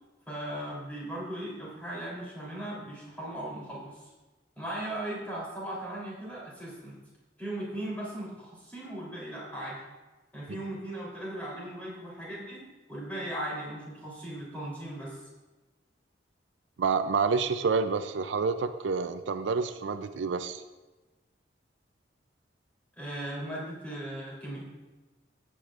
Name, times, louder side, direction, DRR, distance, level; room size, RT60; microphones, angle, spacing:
voice 1, 0.3-4.1 4.6-7.0 7.4-9.8 10.3-15.3 23.0-24.7, right 1 dB, 10° left, -6 dB, 3.3 m, -38 dB
voice 2, 16.8-20.6, right 5 dB, 80° right, 10 dB, 0.4 m, -28 dB
14.0 x 8.4 x 2.5 m, 1.2 s
head